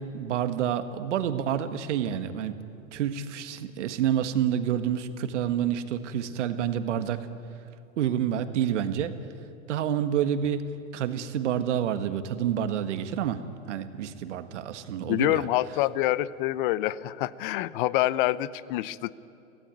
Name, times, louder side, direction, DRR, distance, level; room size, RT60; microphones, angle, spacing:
voice 1, 0.0-2.5 2.9-7.3 8.0-9.1 9.7-10.7 10.9-13.4 13.7-15.4, right 9 dB, 65° right, 9 dB, 1.7 m, -28 dB
voice 2, 15.1-19.1, left 15 dB, 40° left, 18 dB, 0.7 m, -26 dB
24.0 x 17.0 x 9.3 m, 2.7 s
hypercardioid pair, 130°, 39 cm